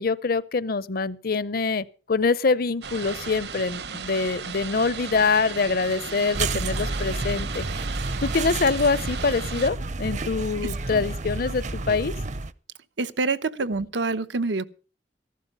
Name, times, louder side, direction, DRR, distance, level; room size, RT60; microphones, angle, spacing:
voice 1, 0.0-7.7 8.2-12.1, left 4 dB, 55° left, 0.7 m, -25 dB
sound 1, 2.8-9.7, right 6 dB, 65° right, 1.1 m, -35 dB
sound 2, 6.3-12.5, right 2 dB, 45° right, 0.7 m, -30 dB
voice 2, 13.0-14.7, right 3 dB, 90° right, 0.9 m, -27 dB
15.0 x 12.0 x 5.5 m
head